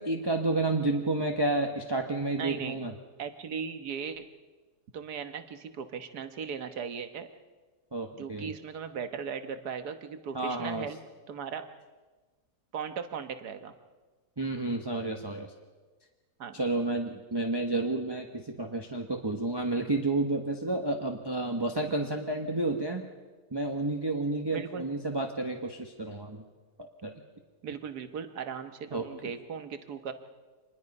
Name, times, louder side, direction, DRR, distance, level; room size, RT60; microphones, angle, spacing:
voice 1, 0.0-2.9 7.9-8.5 10.3-10.9 14.4-15.5 16.5-23.0 23.5-26.4 27.0-27.1 28.9-29.0, right 2 dB, 15° right, 3 dB, 1.1 m, -30 dB
voice 2, 2.4-2.8 3.2-4.3 4.9-7.3 8.2-11.0 11.3-11.6 12.7-13.7 16.4-16.6 24.5-24.9 27.6-30.1, right 6 dB, 80° right, 9 dB, 1.8 m, -38 dB
26.0 x 20.5 x 5.5 m, 1.3 s
omnidirectional pair, 1.7 m